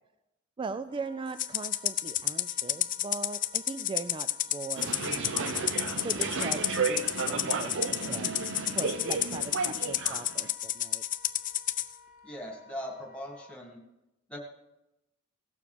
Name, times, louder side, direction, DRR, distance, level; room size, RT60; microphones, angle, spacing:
voice 1, 0.6-5.6 6.0-8.4 8.7-11.0, right 4 dB, 25° right, 11 dB, 0.3 m, -40 dB
Wind instrument woodwind instrument, 0.8-13.6, left 4 dB, 45° right, 3.3 m, -55 dB
Rattle (instrument), 1.4-11.9, left 13 dB, 40° left, 0.5 m, -31 dB
sound 1, 4.8-10.5, right 4 dB, 60° right, 0.8 m, -33 dB
voice 2, 12.2-13.8 14.3-14.4, equal, 5° left, 0 dB, 2.0 m, -40 dB
17.0 x 7.0 x 5.0 m, 0.93 s
head